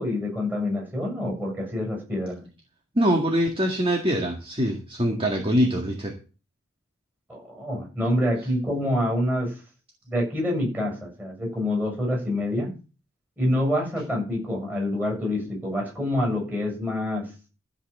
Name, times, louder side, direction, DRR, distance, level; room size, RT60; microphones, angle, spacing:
voice 1, 0.0-2.5 5.2-5.3 7.3-9.5 10.1-12.7 13.4-17.3, left 1 dB, 10° right, -1 dB, 7.4 m, -26 dB
voice 2, 3.0-6.2, equal, 25° right, 2 dB, 1.9 m, -23 dB
14.5 x 5.6 x 7.3 m, 0.34 s
head